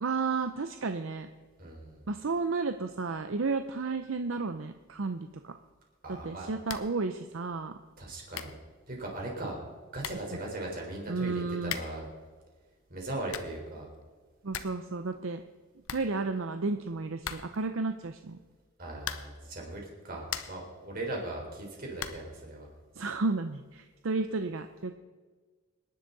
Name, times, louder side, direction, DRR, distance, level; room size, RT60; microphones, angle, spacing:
voice 1, 0.0-1.3 2.1-5.5 6.1-7.8 11.1-11.7 14.4-15.4 15.9-18.4 23.0-24.9, right 3 dB, 65° right, 8 dB, 0.6 m, -32 dB
voice 2, 1.6-2.0 6.0-6.5 8.0-8.5 8.9-9.6 9.9-12.1 12.9-13.9 18.8-22.7, right 1 dB, 40° right, -1 dB, 4.1 m, -38 dB
sound 1, 6.6-7.0 7.3-7.4 8.0-8.1 8.3-8.7 9.6-9.7 10.0-10.4 11.6-12.1 13.0-13.6 14.0-14.1 14.3-14.9 15.1-15.2 15.5-15.6 15.8-16.6 17.2-17.7 19.0-19.5 20.0-20.7 22.0-22.4, left 8 dB, 75° left, 0.8 m, -40 dB
25.5 x 10.5 x 4.1 m, 1.4 s
head